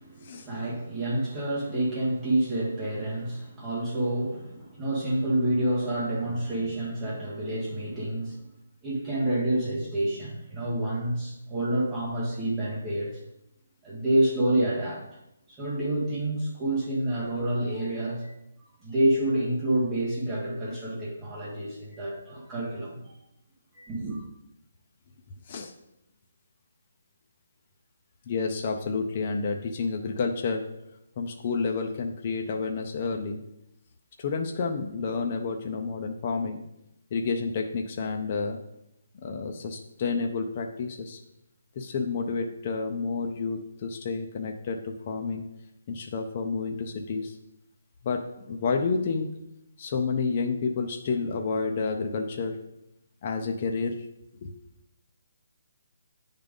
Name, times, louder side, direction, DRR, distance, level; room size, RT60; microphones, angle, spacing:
voice 1, 0.0-8.4 8.8-13.2 13.8-15.0 15.5-18.3 18.8-23.0 23.7-24.2, right 1 dB, 10° right, -7 dB, 1.5 m, -28 dB
voice 2, 28.3-30.6 31.2-33.4 34.2-36.6 37.1-38.6 39.2-41.2 41.8-45.5 45.9-47.4 48.0-49.3 49.8-52.6 53.2-54.0 54.4-54.5, left 4 dB, 25° left, 3 dB, 0.5 m, -30 dB
8.9 x 3.7 x 5.2 m, 0.84 s
hypercardioid pair, 180°, 0 cm